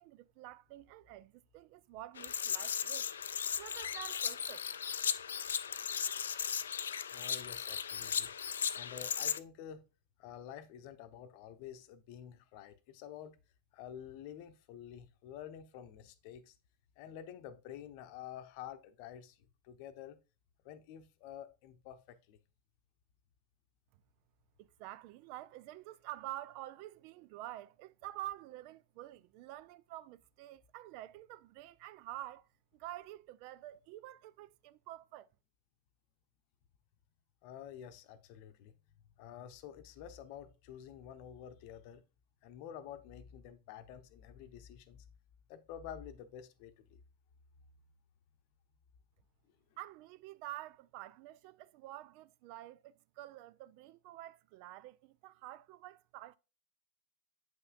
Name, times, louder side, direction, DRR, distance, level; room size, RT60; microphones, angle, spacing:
voice 1, 0.0-3.1 3.6-4.7 24.6-35.3 49.8-56.4, right 15 dB, 45° right, 0.3 m, -48 dB
sound 1, 2.2-9.4, left 8 dB, 65° left, 0.3 m, -36 dB
voice 2, 7.1-8.3 8.7-9.8 10.2-13.4 13.7-16.6 17.0-20.2 20.6-22.4 37.4-38.7 39.2-42.0 42.4-45.0 45.5-47.0, left 9 dB, 45° left, 0.8 m, -49 dB
7.9 x 5.5 x 2.5 m
figure-of-eight pair, 90°, 0 cm